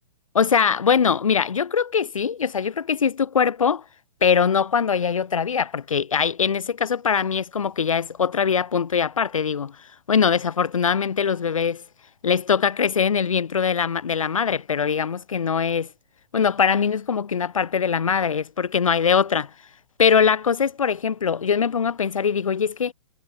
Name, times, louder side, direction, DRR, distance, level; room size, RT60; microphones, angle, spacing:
voice 1, 0.3-3.8 4.2-11.8 12.2-15.9 16.3-19.5 20.0-22.9, left 6 dB, 80° left, 0.8 m, -22 dB
figure-of-eight pair, 120°, 17 cm